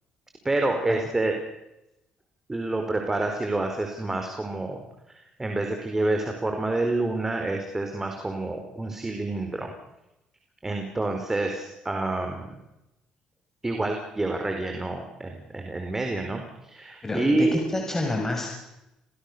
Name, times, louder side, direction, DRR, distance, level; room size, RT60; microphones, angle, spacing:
voice 1, 0.4-1.3 2.5-4.8 5.4-9.7 10.6-12.6 13.6-17.5, right 2 dB, 20° right, 4 dB, 4.7 m, -28 dB
voice 2, 17.0-18.5, left 2 dB, 20° left, 1 dB, 6.5 m, -28 dB
29.0 x 19.0 x 7.0 m, 0.91 s
supercardioid pair, 80°, 2 cm